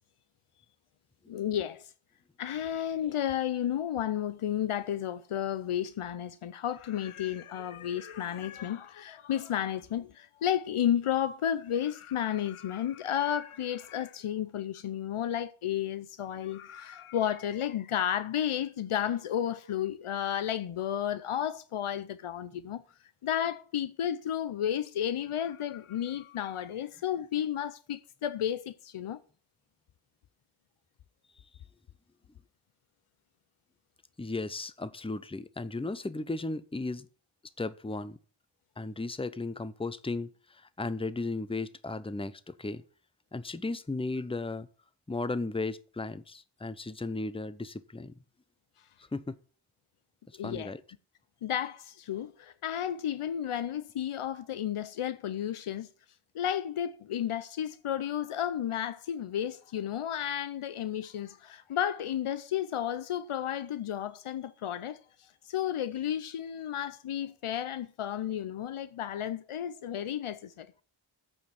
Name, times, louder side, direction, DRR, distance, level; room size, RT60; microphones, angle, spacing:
voice 1, 1.3-1.9 2.4-22.8 23.2-29.2 50.3-50.7 51.4-55.9 56.3-70.7, left 10 dB, 85° left, 0.7 m, -32 dB
voice 2, 34.2-37.1 37.6-38.2 38.8-42.8 43.3-44.7 45.1-48.1 49.1-49.3 50.4-50.8, left 3 dB, 10° left, 0.7 m, -35 dB
8.8 x 5.1 x 7.8 m
wide cardioid pair, 60°, 50 cm